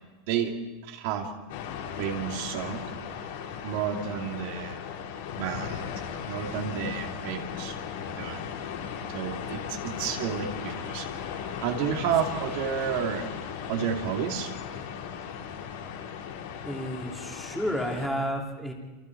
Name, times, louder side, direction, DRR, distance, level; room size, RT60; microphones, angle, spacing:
voice 1, 0.8-1.3 2.0-2.8 3.6-4.8 5.3-5.8 6.3-7.8 8.2-8.5 9.1-11.1 11.6-13.3 13.7-14.5, right 8 dB, 50° right, 2 dB, 2.7 m, -31 dB
sound 1, 1.5-18.1, left 7 dB, 65° left, 4.9 m, -37 dB
voice 2, 16.6-18.7, equal, ahead, -1 dB, 2.8 m, -31 dB
29.0 x 28.5 x 4.8 m, 1.2 s
supercardioid pair, 180°, 0 cm